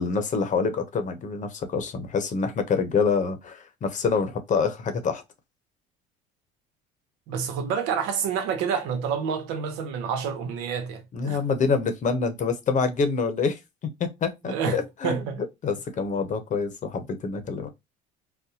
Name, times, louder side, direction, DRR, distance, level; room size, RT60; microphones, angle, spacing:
voice 1, 0.0-5.2 11.1-13.6 14.0-15.2 15.6-17.7, left 5 dB, 45° left, 0.9 m, -26 dB
voice 2, 7.3-11.4 14.4-15.4, right 7 dB, 80° right, 0.9 m, -28 dB
4.0 x 2.1 x 2.8 m
supercardioid pair, 90°, 18 cm